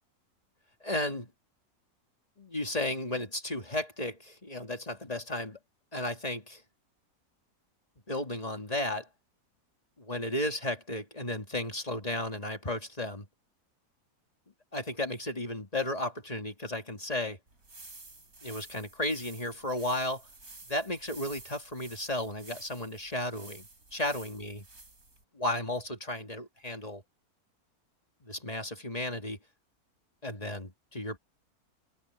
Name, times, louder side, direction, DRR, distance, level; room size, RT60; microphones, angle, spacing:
voice 1, 0.8-1.3 2.4-5.6 5.9-6.6 8.1-9.1 10.0-13.3 14.7-17.4 18.4-20.3 20.6-24.7 25.3-27.0 28.2-29.4 30.2-31.2, left 1 dB, 25° left, 2.1 m, -34 dB
sound 1, 17.5-25.2, right 2 dB, 70° right, 5.8 m, -51 dB
omnidirectional pair, 1.6 m